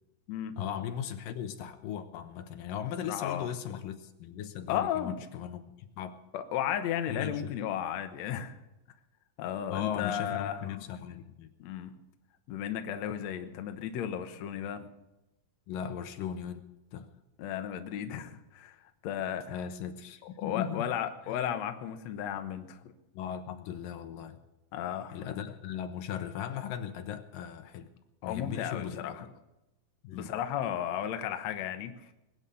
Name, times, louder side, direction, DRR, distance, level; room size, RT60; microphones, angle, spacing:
voice 1, 0.6-6.2 7.1-7.5 9.7-11.5 15.7-16.6 16.9-17.1 19.5-20.9 21.3-21.4 23.1-24.4 25.1-27.9 28.2-29.2 30.0-30.3, left 9 dB, 80° left, 8 dB, 2.7 m, -38 dB
voice 2, 3.1-3.5 4.7-5.1 6.3-8.6 9.4-10.7 11.6-11.9 12.5-14.9 17.4-18.8 19.0-19.6 20.4-22.8 24.7-25.2 28.2-29.3 30.1-31.9, left 10 dB, 65° left, 7 dB, 2.0 m, -34 dB
21.0 x 9.1 x 6.9 m, 0.95 s
omnidirectional pair, 4.0 m